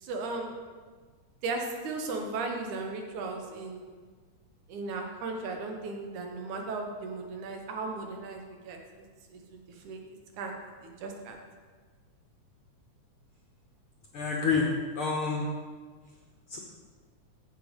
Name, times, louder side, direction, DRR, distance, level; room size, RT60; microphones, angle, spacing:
voice 1, 0.0-0.5 1.4-3.9 4.7-8.8 9.3-10.0 10.4-11.4, right 3 dB, 80° right, 2 dB, 2.6 m, -36 dB
voice 2, 14.1-14.7 14.9-15.5 16.5-16.6, left 5 dB, 65° left, 0 dB, 1.4 m, -28 dB
14.5 x 5.1 x 5.2 m, 1.5 s
omnidirectional pair, 3.4 m